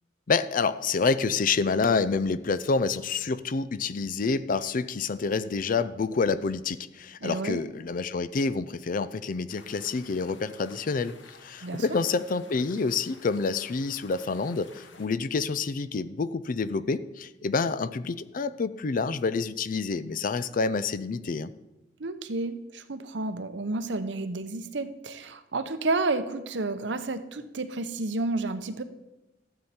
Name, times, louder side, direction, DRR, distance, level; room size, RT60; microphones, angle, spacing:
voice 1, 0.3-11.1 11.4-21.5, left 4 dB, 50° left, 15 dB, 0.5 m, -28 dB
voice 2, 7.2-7.6 11.6-11.9 22.0-28.8, right 2 dB, 70° right, 11 dB, 0.8 m, -31 dB
sound 1, 9.5-15.1, left 4 dB, 80° left, 1.2 m, -52 dB
13.0 x 8.0 x 4.3 m, 1.0 s
head